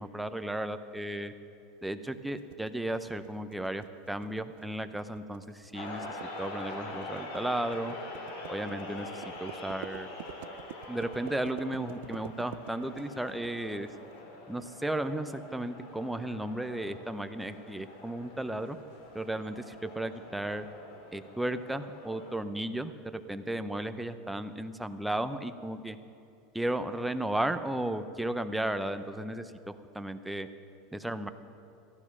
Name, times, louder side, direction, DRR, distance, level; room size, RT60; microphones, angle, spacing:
voice 1, 0.0-1.3 1.8-8.0 8.5-10.1 10.9-13.9 14.5-18.8 19.1-20.7 21.1-26.0 26.5-30.5 30.9-31.3, right 1 dB, 5° right, 10 dB, 0.6 m, -34 dB
sound 1, 2.4-14.0, right 15 dB, 80° right, 0.3 m, -48 dB
sound 2, 5.7-22.4, left 2 dB, 75° left, 2.7 m, -45 dB
15.0 x 12.5 x 6.0 m, 2.8 s
supercardioid pair, 140°, 0 cm